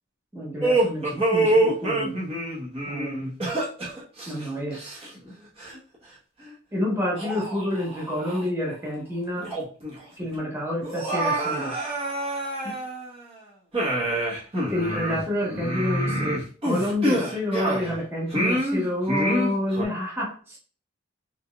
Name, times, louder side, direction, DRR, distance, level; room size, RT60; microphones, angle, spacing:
voice 1, 0.3-2.2 2.9-3.3 4.3-4.9 6.7-9.5 10.2-11.8 12.6-12.7 14.7-20.6, left 1 dB, 10° right, -5 dB, 1.1 m, -28 dB
sound 1, 0.6-5.3 5.6-5.8 6.5-6.6 7.2-8.5 8.9-9.0 9.4-9.9 10.2-10.3 10.8-13.3 13.7-18.0 18.3-19.8, right 1 dB, 30° right, 1.2 m, -26 dB
3.8 x 3.5 x 2.4 m, 0.41 s
head